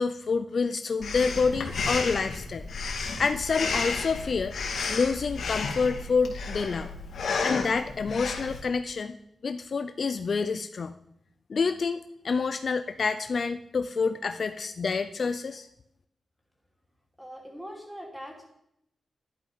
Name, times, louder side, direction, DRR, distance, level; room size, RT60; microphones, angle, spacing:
voice 1, 0.0-2.7 3.2-4.6 4.9-6.9 7.4-9.2 9.4-10.9 11.5-12.0 12.2-15.7, left 5 dB, 45° left, 10 dB, 0.5 m, -28 dB
Breathing, 1.0-8.6, left 4 dB, 75° left, 2.3 m, -32 dB
voice 2, 17.2-18.5, equal, 5° right, 0 dB, 3.1 m, -42 dB
13.0 x 11.5 x 5.7 m, 0.79 s
wide cardioid pair, 180°, 0 cm